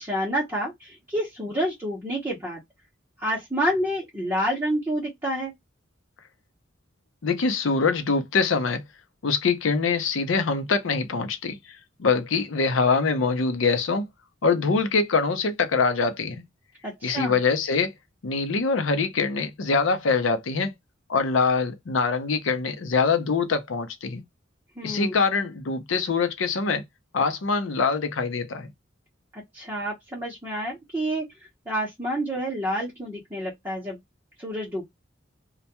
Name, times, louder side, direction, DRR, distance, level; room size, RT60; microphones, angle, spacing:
voice 1, 0.0-2.6 3.2-5.5 16.8-17.4 24.8-25.1 29.3-31.3 31.7-34.0 34.4-34.9, equal, 15° right, 0.8 m, -28 dB
voice 2, 7.2-8.8 9.2-14.0 14.4-16.4 17.0-17.9 18.2-20.7 21.1-24.2 24.8-26.8 27.1-28.7, left 4 dB, 80° left, 0.6 m, -24 dB
2.2 x 2.2 x 2.8 m
head